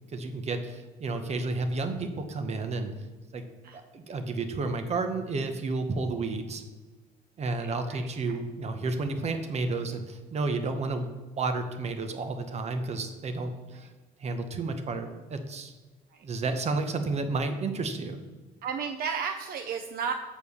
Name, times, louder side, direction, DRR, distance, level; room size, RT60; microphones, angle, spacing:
voice 1, 0.1-2.9 3.3-3.4 3.7-6.6 7.4-13.9 14.2-15.7 16.2-18.2, right 3 dB, 40° right, 7 dB, 1.0 m, -31 dB
voice 2, 7.6-8.0 8.3-8.4 18.6-20.1, right 6 dB, 60° right, 6 dB, 0.6 m, -33 dB
7.2 x 4.5 x 7.0 m, 1.3 s
cardioid pair, 110°, 17 cm